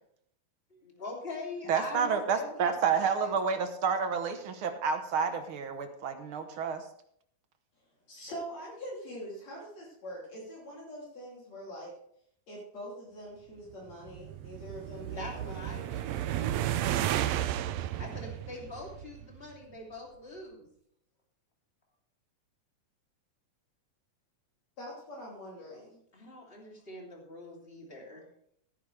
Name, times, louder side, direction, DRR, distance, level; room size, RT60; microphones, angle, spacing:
voice 1, 0.7-2.7 3.1-3.4 15.2-17.1 18.0-20.7 26.1-28.2, left 2 dB, 20° left, -1 dB, 3.0 m, -43 dB
voice 2, 1.7-6.8, right 6 dB, 60° right, 7 dB, 1.5 m, -29 dB
voice 3, 8.1-11.9 12.5-15.9 24.8-26.0, equal, 60° left, -4 dB, 4.2 m, -44 dB
sound 1, 13.9-19.4, right 12 dB, 75° right, 1.7 m, -33 dB
16.0 x 10.0 x 3.3 m, 0.68 s
omnidirectional pair, 3.5 m